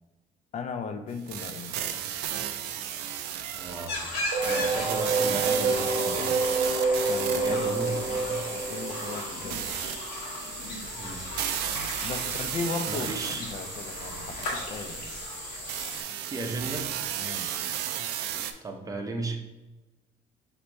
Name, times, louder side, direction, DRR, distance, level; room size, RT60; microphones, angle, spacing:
voice 1, 0.5-1.8 7.1-7.6 8.1-9.7 12.0-15.1 17.2-17.5, left 4 dB, 45° left, 8 dB, 0.5 m, -37 dB
sound 1, 1.3-18.5, right 10 dB, 85° right, 0.4 m, -34 dB
voice 2, 3.5-4.1 4.4-6.4 7.4-8.4 11.0-11.2 12.9-13.4 16.3-16.9 18.6-19.4, right 2 dB, 20° right, 3 dB, 0.7 m, -36 dB
sound 2, 3.9-16.0, left 2 dB, 85° left, 1.3 m, -37 dB
sound 3, 4.3-10.0, right 3 dB, 60° right, 0.8 m, -28 dB
5.2 x 3.0 x 3.3 m, 1.1 s
cardioid pair, 110°, 17 cm